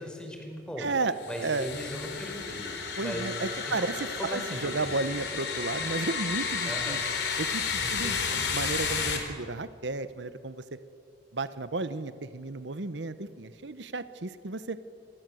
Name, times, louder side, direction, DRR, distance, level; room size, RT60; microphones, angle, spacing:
voice 1, 0.0-0.9 1.3-3.3 3.7-3.8 4.2-4.9 5.8-5.9 6.6-7.0 7.8-8.1, equal, 5° left, 2 dB, 5.1 m, -38 dB
voice 2, 0.8-1.7 3.0-7.0 7.4-10.6 11.3-14.8, right 3 dB, 80° right, 13 dB, 1.0 m, -33 dB
sound 1, 1.2-9.2, left 5 dB, 70° left, 4.0 m, -32 dB
27.5 x 23.0 x 7.8 m, 2.5 s
head